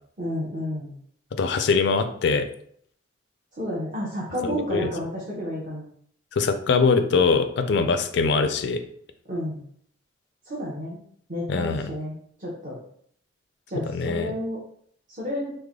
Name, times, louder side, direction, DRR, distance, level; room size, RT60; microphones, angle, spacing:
voice 1, 0.2-0.9 3.6-5.9 9.3-9.6 10.4-11.0 11.3-12.8 13.7-14.6 15.1-15.5, equal, 45° right, -6 dB, 0.8 m, -31 dB
voice 2, 1.4-2.5 4.4-4.9 6.4-8.8 11.5-11.9 13.9-14.3, left 4 dB, 60° left, 8 dB, 0.3 m, -22 dB
3.2 x 2.1 x 3.5 m, 0.63 s
head